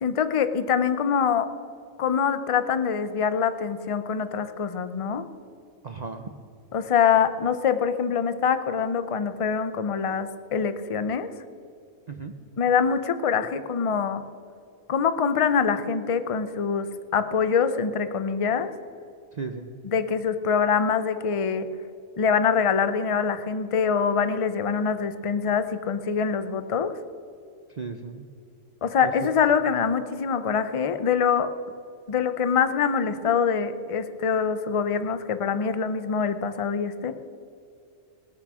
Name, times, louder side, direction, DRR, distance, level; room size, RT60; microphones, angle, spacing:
voice 1, 0.0-1.5 2.0-5.2 6.7-11.3 12.6-14.2 14.9-18.7 19.8-21.7 22.2-26.9 28.8-31.5 32.1-37.1, left 6 dB, 35° left, 11 dB, 0.5 m, -24 dB
voice 2, 5.8-6.3 12.1-12.3 19.3-19.7 27.7-28.2 29.0-29.3, right 5 dB, 40° right, 5 dB, 0.6 m, -35 dB
21.0 x 7.2 x 6.3 m, 2.6 s
omnidirectional pair, 1.4 m